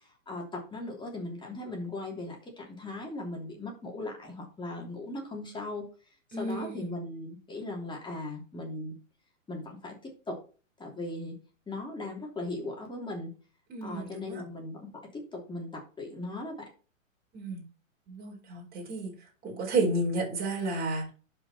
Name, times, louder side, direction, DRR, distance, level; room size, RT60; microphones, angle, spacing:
voice 1, 0.3-5.9 6.4-9.0 9.5-9.9 10.3-10.4 10.8-11.3 11.7-13.3 13.8-14.9 15.1-16.6, left 2 dB, 10° left, 0 dB, 3.1 m, -38 dB
voice 2, 6.3-6.9 13.7-14.4 17.3-17.6 18.1-19.1 19.4-21.1, right 2 dB, 20° right, -2 dB, 4.5 m, -31 dB
11.5 x 5.3 x 4.2 m, 0.37 s
hypercardioid pair, 125°, 40 cm